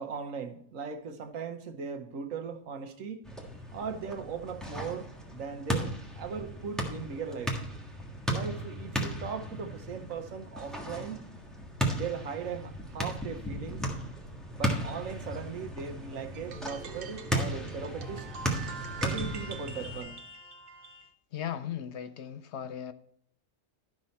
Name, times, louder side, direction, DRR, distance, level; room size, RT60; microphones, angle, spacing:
voice 1, 0.0-3.2 3.7-7.5 8.3-11.3 11.9-13.8 14.5-18.3 19.0-20.2, right 6 dB, 80° right, 1.3 m, -38 dB
sound 1, 3.2-20.0, equal, ahead, 1.4 m, -36 dB
sound 2, 16.3-21.1, right 4 dB, 50° right, 0.9 m, -44 dB
voice 2, 21.3-22.9, left 9 dB, 65° left, 0.8 m, -37 dB
12.0 x 6.1 x 4.2 m
omnidirectional pair, 1.4 m